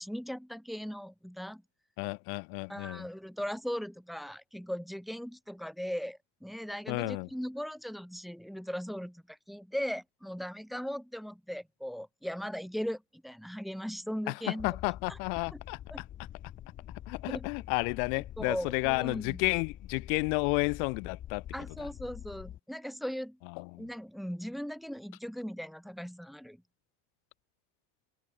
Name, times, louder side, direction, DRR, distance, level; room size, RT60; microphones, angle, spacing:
voice 1, 0.0-1.6 2.7-15.2 15.5-15.6 15.9-16.0 17.3-17.5 18.4-19.4 21.5-23.4 23.8-26.6, equal, ahead, 1.3 m, -38 dB
voice 2, 2.0-3.1 6.9-7.3 14.3-14.4 14.6-15.8 17.1-21.4 23.6-23.8, left 40 dB or more, 80° left, 0.6 m, -31 dB
sound 1, 14.6-22.6, left 11 dB, 25° left, 0.9 m, -46 dB
cardioid pair, 165°, 44 cm